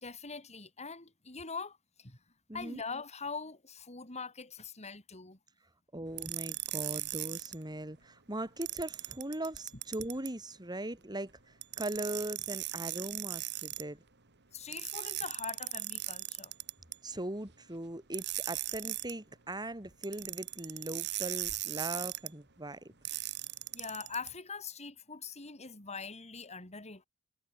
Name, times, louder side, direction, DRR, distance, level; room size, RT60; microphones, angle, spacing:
voice 1, 0.0-2.2 2.5-5.4 14.5-16.5 23.7-27.1, left 5 dB, 30° left, 4.2 m, -43 dB
voice 2, 2.5-2.8 5.9-11.3 11.8-14.0 17.0-22.9, right 1 dB, 20° right, 3.9 m, -39 dB
sound 1, 6.2-7.5 8.6-10.3 11.6-13.8 14.7-17.0 18.1-19.1 20.0-22.3 23.0-24.3, right 15 dB, 50° right, 3.0 m, -38 dB
head